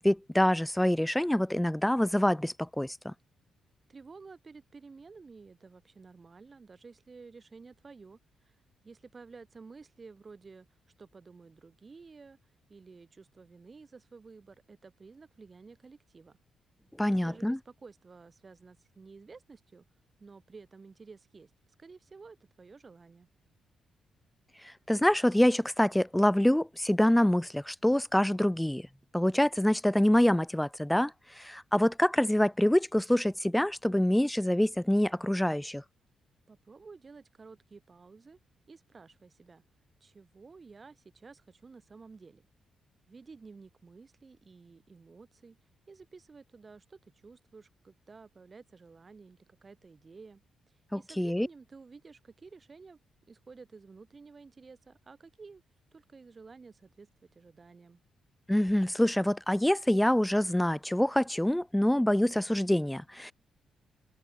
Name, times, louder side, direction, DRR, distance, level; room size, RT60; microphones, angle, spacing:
voice 1, 0.0-3.1 17.0-17.6 24.9-28.9 29.1-31.1 31.4-35.8 50.9-51.5 58.5-63.3, left 1 dB, 5° left, 0.4 m, -26 dB
voice 2, 3.9-8.6 8.8-10.7 11.0-12.4 12.7-16.4 17.0-19.8 20.2-21.5 21.8-23.3 36.5-38.4 38.7-39.6 40.0-42.4 43.1-45.6 45.9-50.4 50.9-53.0 53.3-55.6 55.9-58.0, right 4 dB, 25° right, 8.0 m, -52 dB
open air
cardioid pair, 145°, 0 cm